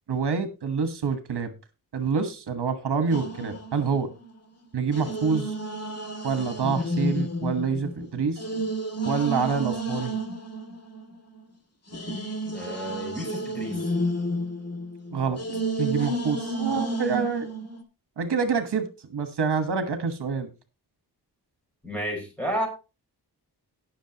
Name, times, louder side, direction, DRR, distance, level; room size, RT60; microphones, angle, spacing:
voice 1, 0.1-1.5 1.9-4.1 4.7-5.6 6.2-8.4 9.0-10.1 15.1-15.4 15.8-17.5 18.2-20.5, right 5 dB, 75° right, 8 dB, 1.4 m, -27 dB
sound 1, 3.1-4.4 4.9-11.4 11.9-17.8, right 1 dB, 40° left, 2.2 m, -31 dB
voice 2, 12.5-13.9 21.8-22.7, equal, 5° left, 1 dB, 4.9 m, -31 dB
18.5 x 6.2 x 2.9 m, 0.29 s
wide cardioid pair, 135°, 40 cm